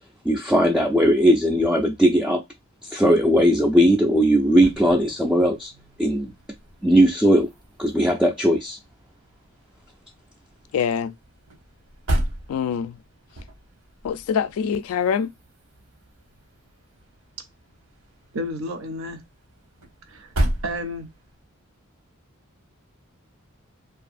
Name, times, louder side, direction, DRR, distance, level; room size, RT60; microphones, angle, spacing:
voice 1, 0.2-2.4 2.8-5.7 6.0-6.3 6.8-7.5 7.8-8.8, equal, 5° right, 0.3 m, -18 dB
sound 1, 3.3-21.4, right 1 dB, 90° right, 0.9 m, -35 dB
voice 2, 10.7-11.1 12.5-12.9 14.0-15.3, left 7 dB, 85° left, 0.3 m, -24 dB
voice 3, 18.3-19.2 20.1-20.3 20.6-21.1, equal, 70° right, 0.6 m, -31 dB
2.7 x 2.3 x 2.5 m
head